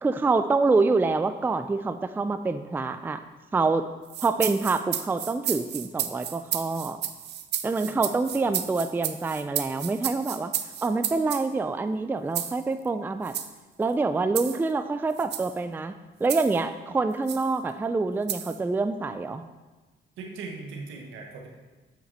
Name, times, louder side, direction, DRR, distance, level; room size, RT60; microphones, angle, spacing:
voice 1, 0.0-3.2 3.5-3.9 4.2-7.0 7.6-10.5 10.8-13.4 13.8-15.9 16.2-19.4, right 3 dB, 10° right, 10 dB, 0.3 m, -26 dB
sound 1, 4.1-11.5 12.3-12.6 13.2-13.5 14.3-14.6 15.2-15.5 16.3-16.6 17.3-17.5 18.3-18.6, right 10 dB, 60° right, 0.6 m, -32 dB
voice 2, 7.9-8.6 20.2-21.5, right 4 dB, 85° right, 1 dB, 1.4 m, -40 dB
7.4 x 6.1 x 4.1 m, 1.2 s
cardioid pair, 90°, 20 cm